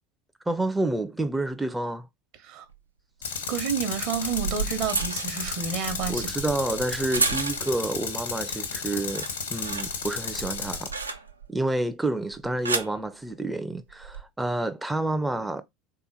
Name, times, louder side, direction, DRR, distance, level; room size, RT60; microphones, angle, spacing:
voice 1, 0.5-2.1 6.1-11.2 11.5-15.6, right 2 dB, 10° right, 0.4 m, -29 dB
sound 1, 2.7-2.8 4.0-7.9 8.3-8.7 9.0-11.6 12.3-13.0 13.9-14.2, right 4 dB, 85° right, 0.4 m, -32 dB
Tools, 3.2-10.9, left 5 dB, 75° left, 0.8 m, -33 dB
voice 2, 3.5-6.3, right 7 dB, 55° right, 0.9 m, -30 dB
3.4 x 2.9 x 3.9 m
figure-of-eight pair, 70°, 0 cm